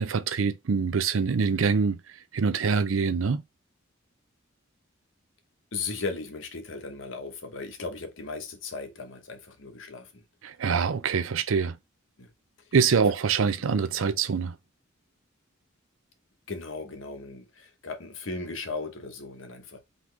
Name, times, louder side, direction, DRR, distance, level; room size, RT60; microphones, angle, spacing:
voice 1, 0.0-2.0 2.3-3.4 10.4-11.8 12.7-14.5, right 5 dB, 80° right, 0.5 m, -25 dB
voice 2, 5.7-10.2 12.2-12.3 13.6-13.7 16.5-19.8, left 3 dB, 70° left, 1.0 m, -37 dB
3.9 x 3.0 x 3.3 m
head